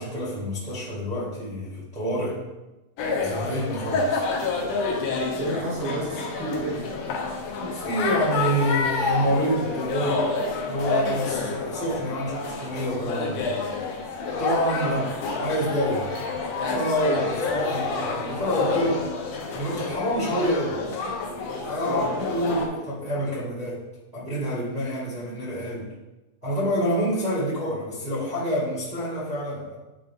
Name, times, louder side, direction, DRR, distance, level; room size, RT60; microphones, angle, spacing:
voice 1, 0.0-2.4 3.2-4.2 7.5-10.3 10.7-13.5 14.4-15.0 15.4-16.1 16.7-17.2 17.5-19.1 19.5-20.8 21.7-23.8 24.1-25.9 26.4-29.8, equal, 45° right, -10 dB, 0.5 m, -27 dB
sound 1, 3.0-22.7, left 4 dB, 70° left, 2.2 m, -28 dB
voice 2, 5.1-6.9 14.8-15.1 17.0-17.4 21.8-22.1, right 1 dB, 90° right, -5 dB, 4.2 m, -30 dB
8.5 x 4.3 x 3.6 m, 1.1 s
omnidirectional pair, 4.1 m